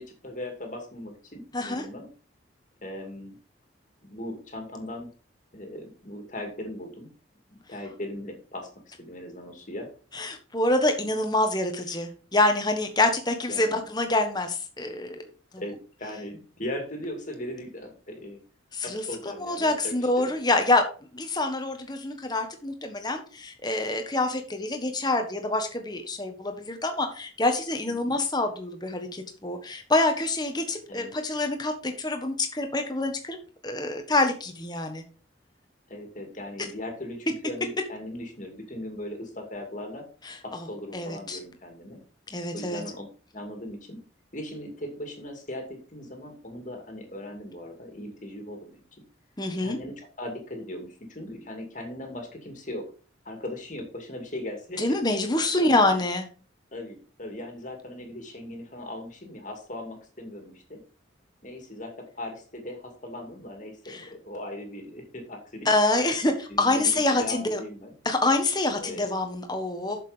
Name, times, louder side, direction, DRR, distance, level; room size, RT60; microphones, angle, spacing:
voice 1, 0.0-2.1 2.8-3.4 4.0-5.1 5.5-7.1 7.5-9.9 11.8-11.9 13.5-13.8 15.6-18.4 18.8-20.3 27.9-28.2 30.9-31.1 35.9-40.0 40.4-42.0 42.5-43.1 43.3-44.0 44.3-48.9 49.6-52.9 53.2-54.8 55.3-56.0 56.7-60.8 61.4-65.7 66.2-67.9 68.8-69.0, left 1 dB, 40° left, 2.3 m, -39 dB
voice 2, 1.5-1.9 10.1-15.2 18.7-19.0 19.4-20.8 21.1-33.4 33.6-35.0 40.3-40.4 40.9-41.4 42.3-42.8 49.4-49.8 54.8-56.2 63.9-64.1 65.6-67.6 68.0-70.0, left 2 dB, 20° left, 1.4 m, -26 dB
7.6 x 6.8 x 5.1 m
head